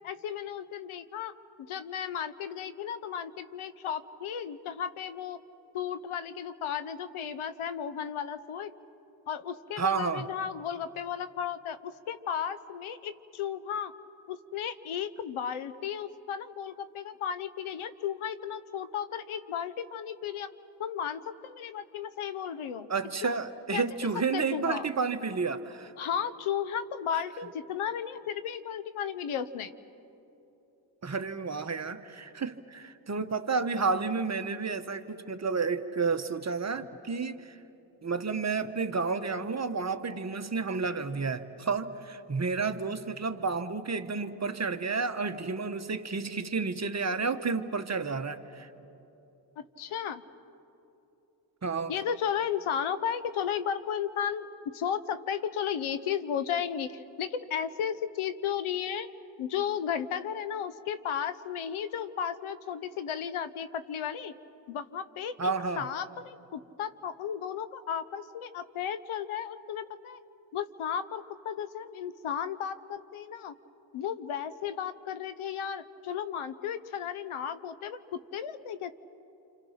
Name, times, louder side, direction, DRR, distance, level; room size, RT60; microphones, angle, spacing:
voice 1, 0.0-1.3 1.6-5.4 5.7-8.7 9.3-13.9 14.3-20.5 20.8-22.9 23.2-23.4 23.7-23.8 24.3-24.9 26.0-29.7 49.6-50.2 51.9-54.5 54.7-59.1 59.4-64.3 64.7-65.5 65.8-70.2 70.5-73.5 73.9-78.9, left 8 dB, 75° left, 13 dB, 1.0 m, -34 dB
voice 2, 9.8-10.2 22.9-25.9 31.0-37.6 38.0-48.7 51.6-51.9 65.4-65.8, right 4 dB, 30° right, 8 dB, 1.2 m, -31 dB
28.5 x 26.0 x 5.9 m, 2.9 s
cardioid pair, 65°, 50 cm